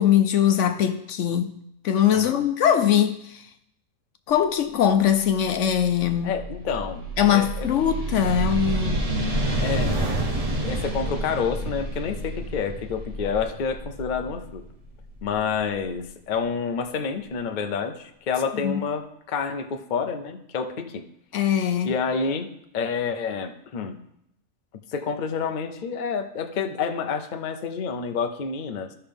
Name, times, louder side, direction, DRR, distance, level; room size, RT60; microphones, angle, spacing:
voice 1, 0.0-1.6 1.8-3.5 4.3-6.3 7.2-9.1 18.6-18.8 21.3-21.9, left 9 dB, 70° left, 0.9 m, -21 dB
voice 2, 2.1-2.4 6.2-7.7 9.6-9.9 10.6-14.6 15.2-21.0 21.8-24.0 24.9-28.9, left 6 dB, 45° left, 0.7 m, -29 dB
sound 1, 5.1-15.8, right 2 dB, 30° right, 0.9 m, -29 dB
14.5 x 5.6 x 3.5 m
omnidirectional pair, 1.4 m